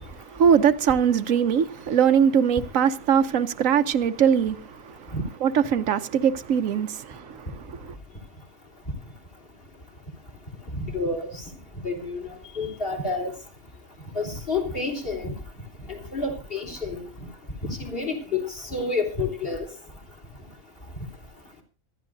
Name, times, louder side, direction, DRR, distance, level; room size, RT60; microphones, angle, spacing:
voice 1, 0.0-5.1 5.4-7.9, right 8 dB, 90° right, 1.2 m, -22 dB
voice 2, 10.8-11.4 11.8-12.2 12.5-13.3 14.2-15.3 15.9-17.1 17.6-19.7, left 3 dB, 45° left, 3.7 m, -29 dB
25.5 x 11.0 x 2.6 m
omnidirectional pair, 1.3 m